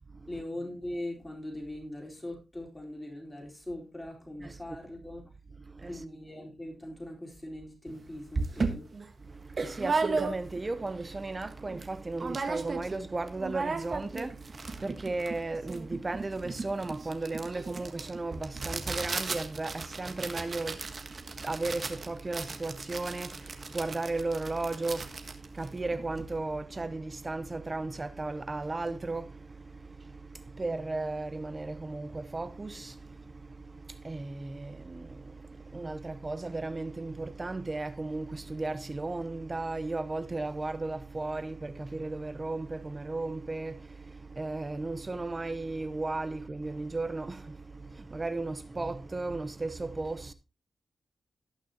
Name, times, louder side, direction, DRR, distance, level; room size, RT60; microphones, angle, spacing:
voice 1, 0.3-5.3 5.9-8.9, left 1 dB, 15° left, 4.1 m, -41 dB
voice 2, 5.6-6.0 9.2-50.3, right 3 dB, 30° right, 0.8 m, -35 dB
sound 1, 7.9-8.0 8.3-10.7 11.1-11.2 11.4-11.9 12.2-13.0 13.3-26.3, right 4 dB, 45° right, 1.5 m, -35 dB
18.0 x 6.1 x 2.9 m
wide cardioid pair, 95°, 0 cm